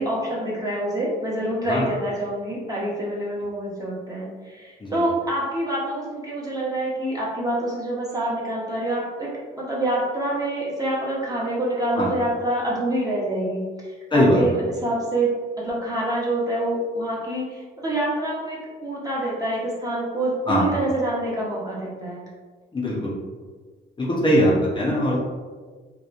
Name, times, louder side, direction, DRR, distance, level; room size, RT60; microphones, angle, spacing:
voice 1, 0.0-22.2 24.2-24.5, right 1 dB, 20° right, -6 dB, 0.8 m, -26 dB
voice 2, 14.1-14.4 20.5-20.7 22.7-23.1 24.0-25.2, equal, 25° left, -6 dB, 0.6 m, -20 dB
2.8 x 2.3 x 2.4 m, 1.5 s
cardioid pair, 90°, 20 cm